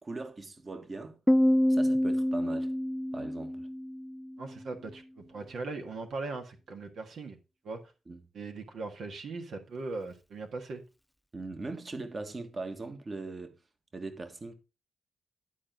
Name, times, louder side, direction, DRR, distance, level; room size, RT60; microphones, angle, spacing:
voice 1, 0.0-1.2 1.7-2.7 3.1-3.7 8.1-8.2 11.3-13.6 13.9-14.5, right 3 dB, 35° right, 1.6 m, -40 dB
Piano, 1.3-4.7, equal, 10° left, 0.4 m, -27 dB
voice 2, 4.4-7.4 7.6-7.8 8.3-10.8, right 3 dB, 70° right, 1.6 m, -39 dB
11.5 x 4.5 x 5.1 m
cardioid pair, 60°, 0 cm